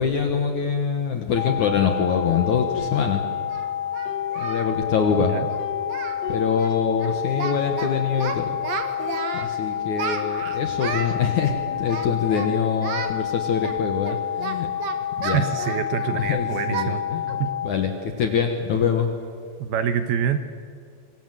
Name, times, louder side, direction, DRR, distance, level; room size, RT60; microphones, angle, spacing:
voice 1, 0.0-3.2 4.4-5.4 6.3-8.5 9.4-14.7 15.2-15.4 16.1-17.9 18.2-19.1, left 6 dB, 60° left, 5 dB, 2.1 m, -24 dB
sound 1, 1.4-17.7, left 10 dB, 80° left, 3.3 m, -29 dB
sound 2, 2.0-3.7 4.1-7.3 7.6-7.7 7.9-8.5 9.0-11.0 11.4-13.1, left 6 dB, 45° left, 2.7 m, -41 dB
Singing, 2.7-2.8 3.5-4.7 5.0-5.2 5.5-5.6 5.9-6.2 6.5-6.7 7.0-7.9 8.2-9.5 10.0-11.2 11.8-12.5 12.8-13.1 13.6-16.3 16.7-16.9 17.3-17.5 17.9-18.0 18.5-18.7, right 7 dB, 55° right, 2.0 m, -33 dB
voice 2, 15.2-17.0 17.4-17.5 19.6-20.4, right 8 dB, 75° right, 9 dB, 2.6 m, -26 dB
27.0 x 23.0 x 7.8 m, 2.2 s
omnidirectional pair, 5.3 m